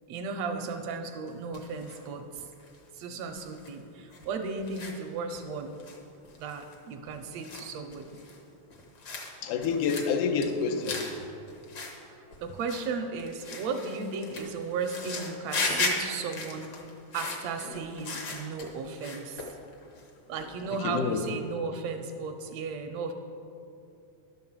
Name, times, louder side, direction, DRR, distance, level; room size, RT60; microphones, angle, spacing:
voice 1, 0.1-2.4 2.9-5.8 6.4-8.2 12.1-16.7 17.1-19.5 20.3-23.1, right 4 dB, 75° right, 5 dB, 1.6 m, -35 dB
sound 1, 1.3-2.0 2.3-2.8 3.3-3.7 4.1-4.3 4.6-5.0 5.3-5.4 5.8-6.0 6.2-6.8 7.1-8.4 8.7-9.3 9.6-10.1 10.4-11.2 11.5-12.0 12.3-12.9 13.2-18.7 19.0-20.1 20.3-20.8, left 3 dB, 70° left, 0.9 m, -36 dB
voice 2, 9.4-11.1 20.8-21.2, left 6 dB, 90° left, 5 dB, 2.2 m, -28 dB
11.0 x 5.5 x 7.1 m, 2.7 s
omnidirectional pair, 3.5 m